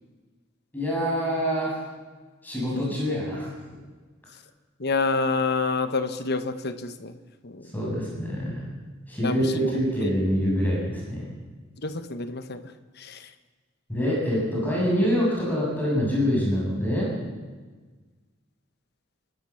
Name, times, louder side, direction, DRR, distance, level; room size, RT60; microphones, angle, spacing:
voice 1, 0.7-1.8 2.4-3.5 7.7-8.6 9.1-11.3 13.9-17.1, equal, 10° left, -5 dB, 7.2 m, -25 dB
voice 2, 4.8-7.2 7.4-7.7 9.2-9.7 10.0-10.1 11.8-12.6 13.0-13.3, left 3 dB, 55° left, 10 dB, 1.4 m, -28 dB
28.5 x 12.5 x 7.2 m, 1.4 s
head